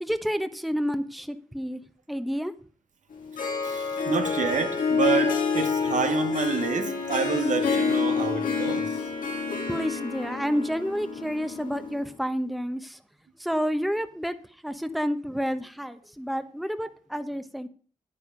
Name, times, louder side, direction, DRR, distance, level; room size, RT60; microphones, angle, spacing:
voice 1, 0.0-1.8 2.1-2.5 9.7-13.0 13.4-14.3 14.6-17.7, equal, ahead, 1.0 m, -29 dB
Harp, 3.1-12.1, left 5 dB, 85° left, 2.3 m, -28 dB
voice 2, 3.6-9.0, right 6 dB, 65° right, 1.2 m, -28 dB
9.7 x 8.9 x 5.2 m
cardioid pair, 60°, 14 cm